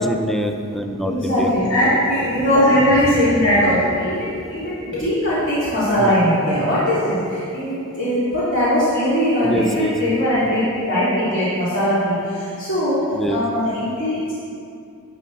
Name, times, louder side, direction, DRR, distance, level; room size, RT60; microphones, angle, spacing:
voice 1, 0.0-1.5 6.0-6.1 9.4-9.9 13.1-13.4, equal, ahead, 4 dB, 0.5 m, -24 dB
voice 2, 1.0-14.3, equal, 60° left, -11 dB, 2.8 m, -20 dB
12.5 x 8.4 x 4.1 m, 2.5 s
head